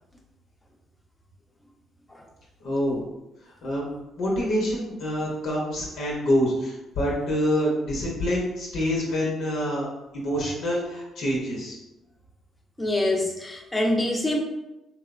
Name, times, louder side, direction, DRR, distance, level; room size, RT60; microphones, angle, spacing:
voice 1, 2.6-3.0 3.6-3.9 4.2-9.9 10.1-11.8, equal, 75° left, -4 dB, 0.6 m, -26 dB
voice 2, 12.8-14.4, left 1 dB, 15° left, 1 dB, 0.6 m, -25 dB
2.8 x 2.0 x 2.4 m, 0.97 s
supercardioid pair, 60°, 0 cm